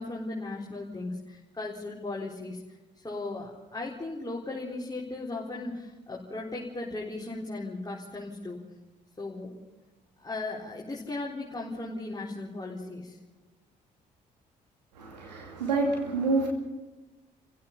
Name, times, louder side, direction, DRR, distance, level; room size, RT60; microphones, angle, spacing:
voice 1, 0.0-2.6 2.9-8.6 9.2-9.5 10.2-13.2, left 2 dB, 20° left, -4 dB, 4.2 m, -37 dB
voice 2, 15.0-16.5, right 3 dB, 80° right, 0 dB, 2.6 m, -28 dB
29.5 x 16.0 x 5.5 m, 1.1 s
figure-of-eight pair, 40°, 21 cm